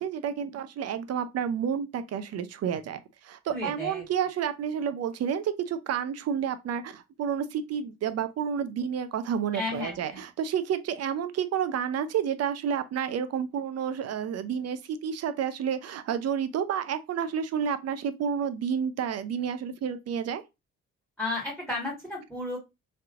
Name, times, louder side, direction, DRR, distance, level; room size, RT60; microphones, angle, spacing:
voice 1, 0.0-20.4, right 8 dB, 55° right, 0.6 m, -30 dB
voice 2, 3.5-4.0 9.5-10.2 21.2-22.6, left 2 dB, ahead, 1.5 m, -33 dB
3.3 x 2.8 x 2.4 m
cardioid pair, 90°, 30 cm